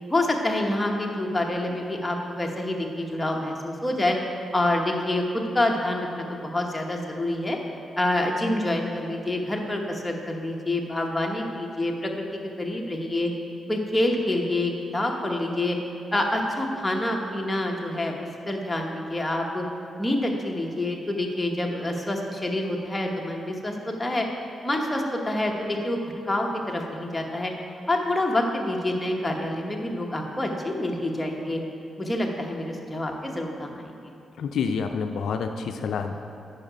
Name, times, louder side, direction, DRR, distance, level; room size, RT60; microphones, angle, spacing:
voice 1, 0.1-4.2 4.5-7.6 8.0-13.3 13.7-15.8 16.1-19.6 20.0-24.3 24.6-27.5 27.9-31.6 32.0-33.9, left 1 dB, 10° left, 0 dB, 1.0 m, -27 dB
voice 2, 34.4-36.1, left 6 dB, 75° left, 6 dB, 0.4 m, -28 dB
9.4 x 5.5 x 5.1 m, 2.6 s
cardioid pair, 105°, 0 cm